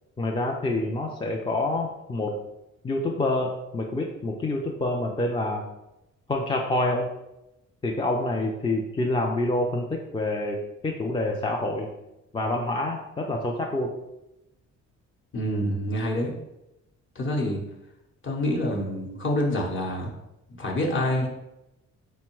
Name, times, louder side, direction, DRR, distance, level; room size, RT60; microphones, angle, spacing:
voice 1, 0.2-2.4 2.8-5.6 6.3-7.1 7.8-11.9 12.3-13.9, left 2 dB, 15° left, 1 dB, 0.4 m, -27 dB
voice 2, 15.3-16.3 17.2-17.6 18.2-20.1 20.6-21.3, left 1 dB, 40° left, -1 dB, 1.0 m, -26 dB
3.7 x 2.1 x 4.5 m, 0.91 s
cardioid pair, 90°, 30 cm